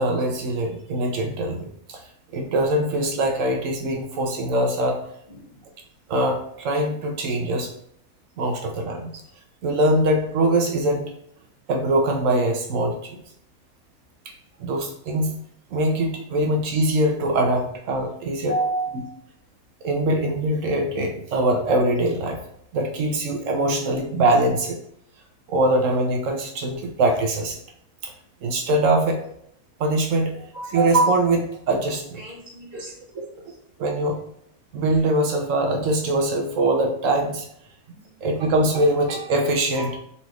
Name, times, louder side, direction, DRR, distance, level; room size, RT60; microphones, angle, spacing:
voice 1, 0.0-2.1 2.3-5.1 6.1-7.7 8.4-9.2 9.6-11.1 11.7-13.2 14.3-14.4 14.6-15.4 15.7-18.6 19.8-22.4 22.7-24.8 25.5-27.6 28.0-28.1 28.4-29.2 29.8-32.2 32.7-34.2 34.7-37.5 38.2-40.0, right 1 dB, 70° right, 3 dB, 0.9 m, -23 dB
voice 2, 18.4-19.1 30.2-30.7 32.2-32.9 39.8-39.9, right 2 dB, 45° left, -5 dB, 0.6 m, -30 dB
4.0 x 3.1 x 2.4 m, 0.70 s
omnidirectional pair, 1.5 m